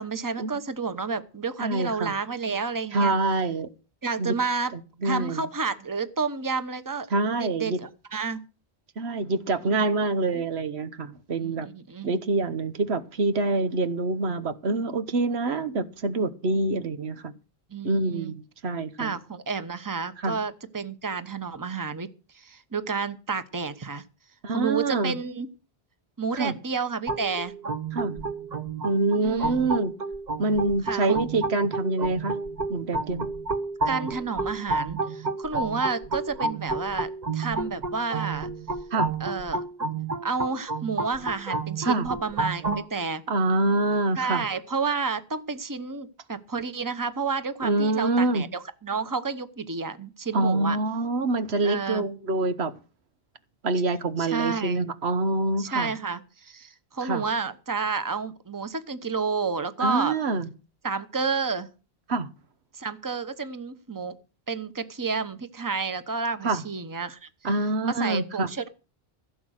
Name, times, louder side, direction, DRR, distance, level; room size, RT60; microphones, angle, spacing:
voice 1, 0.0-3.1 4.0-4.7 5.0-7.1 7.4-8.4 9.8-9.9 10.3-10.4 11.4-12.2 17.7-18.3 19.0-22.1 22.3-24.0 24.5-25.5 26.2-27.5 29.2-29.6 30.8-31.3 33.8-38.5 39.2-39.6 40.2-43.2 44.2-50.8 51.6-52.1 54.2-54.8 55.6-60.2 60.8-61.7 62.7-64.2 64.5-67.3 67.8-68.7, right 5 dB, 20° right, 1.0 m, -30 dB
voice 2, 1.6-2.1 2.9-3.7 4.2-4.3 5.0-5.4 7.1-7.8 9.0-11.7 12.0-17.4 17.8-19.1 20.2-20.4 24.4-25.2 26.3-26.5 27.9-28.1 28.8-29.9 30.4-32.4 32.7-33.3 38.9-39.1 41.8-42.1 43.3-44.4 47.6-48.5 50.3-52.7 53.6-55.9 57.0-57.2 59.8-60.5 62.1-62.3 66.4-66.6 67.4-68.5, right 2 dB, 90° right, 1.4 m, -26 dB
sound 1, 27.1-42.8, right 3 dB, 45° right, 1.1 m, -31 dB
16.0 x 7.9 x 6.5 m
omnidirectional pair, 1.0 m